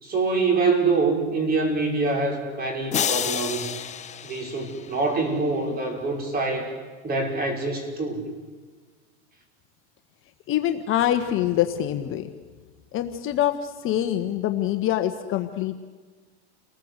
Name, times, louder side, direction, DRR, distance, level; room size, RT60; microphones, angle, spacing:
voice 1, 0.0-3.7 4.2-6.7 7.0-8.2, right 3 dB, 25° right, 3 dB, 5.7 m, -25 dB
sound 1, 2.9-5.3, left 9 dB, 20° left, 0.9 m, -30 dB
voice 2, 10.5-12.3 12.9-15.8, left 12 dB, 35° left, 7 dB, 1.4 m, -25 dB
29.5 x 20.0 x 8.2 m, 1.4 s
supercardioid pair, 135°, 36 cm